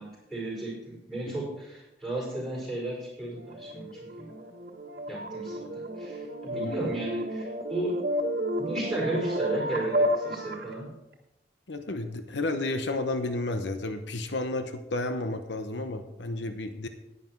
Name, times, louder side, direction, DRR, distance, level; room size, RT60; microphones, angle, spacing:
voice 1, 0.0-3.9 4.2-4.3 5.1-5.7 6.0-7.9 8.6-10.9, right 2 dB, ahead, -5 dB, 5.0 m, -34 dB
sound 1, 3.4-10.7, equal, 55° right, 1.4 m, -31 dB
voice 2, 11.7-16.9, left 2 dB, 85° left, 8 dB, 0.9 m, -32 dB
11.0 x 9.8 x 4.6 m, 0.96 s
head